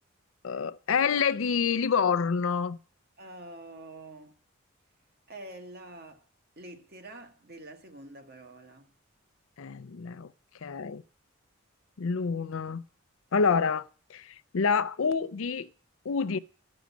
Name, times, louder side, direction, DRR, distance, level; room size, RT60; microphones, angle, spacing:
voice 1, 0.4-2.8 9.6-10.3 10.6-11.0 12.0-12.8 13.3-15.7 16.0-16.4, left 5 dB, 75° left, 0.5 m, -27 dB
voice 2, 3.2-4.4 5.3-6.3 6.6-8.9, right 2 dB, 50° right, 1.4 m, -46 dB
13.5 x 6.3 x 8.2 m
head